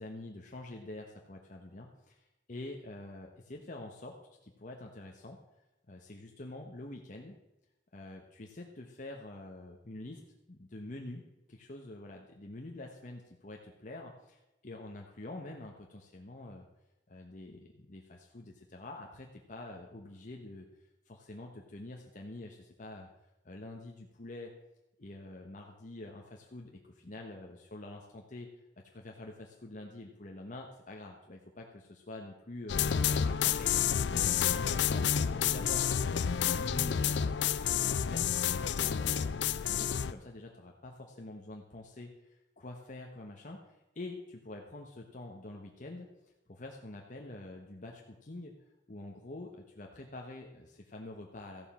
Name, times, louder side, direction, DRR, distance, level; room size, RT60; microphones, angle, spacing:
voice 1, 0.0-4.2 4.4-5.4 5.9-7.4 7.9-10.2 10.5-11.2 11.5-16.7 17.1-20.7 21.1-23.1 23.4-24.5 25.0-28.5 28.9-35.1 35.4-37.4 37.7-46.1 46.5-48.5 48.9-51.7, left 2 dB, 45° left, 1 dB, 1.1 m, -46 dB
sound 1, 32.7-40.1, left 8 dB, 75° left, 0.5 m, -29 dB
14.0 x 7.2 x 6.1 m, 0.95 s
head